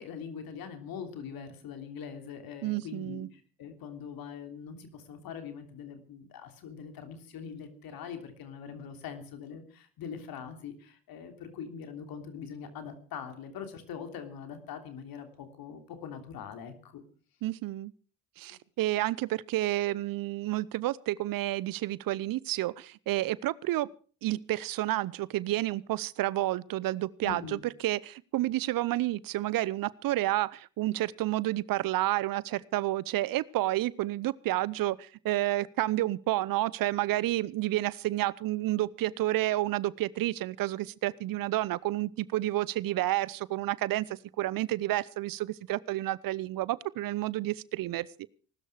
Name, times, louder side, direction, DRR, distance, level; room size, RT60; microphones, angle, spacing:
voice 1, 0.0-17.0 27.2-27.6, left 7 dB, 65° left, 6 dB, 3.2 m, -42 dB
voice 2, 2.6-3.3 17.4-17.9 18.4-23.9 24.2-48.3, right 16 dB, 60° right, 22 dB, 0.8 m, -30 dB
20.0 x 13.0 x 4.9 m, 0.41 s
hypercardioid pair, 50°, 39 cm